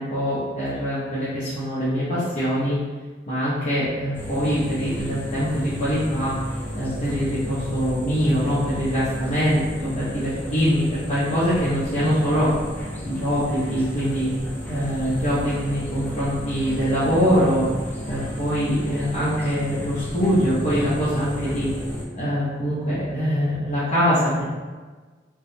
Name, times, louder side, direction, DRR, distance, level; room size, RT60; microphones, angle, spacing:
voice 1, 0.0-2.8 3.3-6.3 6.8-12.5 13.1-14.3 14.7-17.7 18.1-21.7 22.1-24.4, equal, 40° left, -12 dB, 0.7 m, -23 dB
sound 1, 4.1-22.0, equal, 10° left, 0.4 m, -33 dB
3.3 x 2.0 x 2.7 m, 1.4 s
head